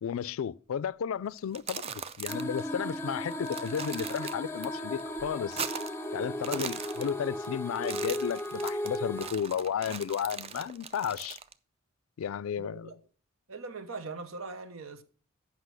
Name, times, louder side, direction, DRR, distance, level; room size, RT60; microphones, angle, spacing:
voice 1, 0.0-5.6 6.1-11.4 12.2-12.9, left 8 dB, 75° left, 0.3 m, -33 dB
sound 1, 1.4-2.6 2.9-3.0 3.3-4.7 5.0-6.0 6.3-7.5 7.8-11.5, right 6 dB, 30° right, 0.4 m, -40 dB
sound 2, 2.3-9.3, left 1 dB, 10° left, 0.6 m, -36 dB
voice 2, 12.5-13.0 13.5-15.0, right 3 dB, 90° right, 0.9 m, -41 dB
8.2 x 5.7 x 6.2 m
head